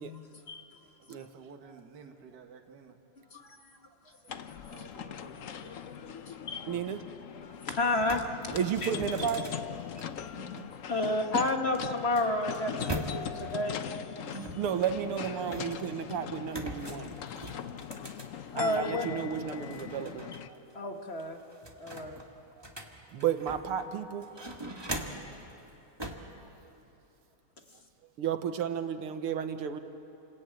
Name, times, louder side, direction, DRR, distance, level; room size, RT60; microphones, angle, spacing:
voice 1, 0.0-1.3 3.3-4.2 4.5-6.7 7.4-8.9 10.3-10.4 10.9-13.8 18.5-19.1 20.3-20.4 20.7-21.4 21.7-22.2 27.7-27.8, left 2 dB, 30° left, 4 dB, 1.6 m, -33 dB
voice 2, 1.0-3.0 4.7-5.8, right 5 dB, 50° right, 3 dB, 2.1 m, -53 dB
sound 1, 4.3-20.5, left 8 dB, 65° left, 0.8 m, -40 dB
voice 3, 6.7-7.0 8.5-9.5 14.6-17.1 17.9-18.0 18.5-20.3 23.1-24.3 28.2-29.8, right 8 dB, 85° right, 9 dB, 2.1 m, -32 dB
sound 2, 7.4-7.5 7.8-10.6 11.5-13.5 14.3-15.9 16.5-18.9 19.3-20.4 20.7-20.8 21.2-23.8 24.2-25.3 26.0-26.3, right 1 dB, 10° right, 1.6 m, -41 dB
29.0 x 21.0 x 9.0 m, 2.8 s
omnidirectional pair, 2.4 m